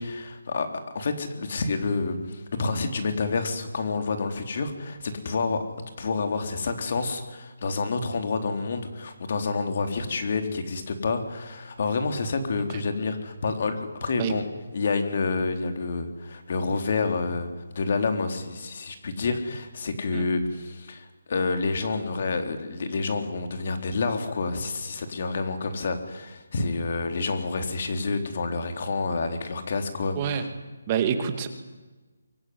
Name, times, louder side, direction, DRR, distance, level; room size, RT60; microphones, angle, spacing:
voice 1, 0.0-5.6 6.0-14.5 14.7-30.5, left 4 dB, 45° left, 7 dB, 3.9 m, -28 dB
voice 2, 30.1-30.5 30.9-31.5, right 8 dB, 20° right, 8 dB, 2.3 m, -27 dB
25.5 x 22.5 x 9.7 m, 1.2 s
hypercardioid pair, 170°, 0 cm